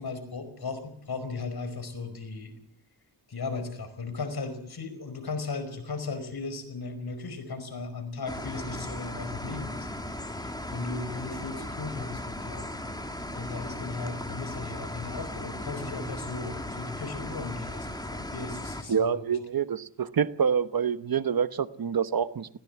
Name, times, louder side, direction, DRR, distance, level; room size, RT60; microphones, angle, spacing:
voice 1, 0.0-2.5 3.3-12.7 13.3-19.4, left 3 dB, 65° left, 8 dB, 5.1 m, -36 dB
sound 1, 8.3-18.8, left 1 dB, 10° left, 3.2 m, -37 dB
voice 2, 18.9-22.5, right 7 dB, 60° right, 13 dB, 1.1 m, -27 dB
20.5 x 17.5 x 8.2 m, 0.66 s
cardioid pair, 75°, 41 cm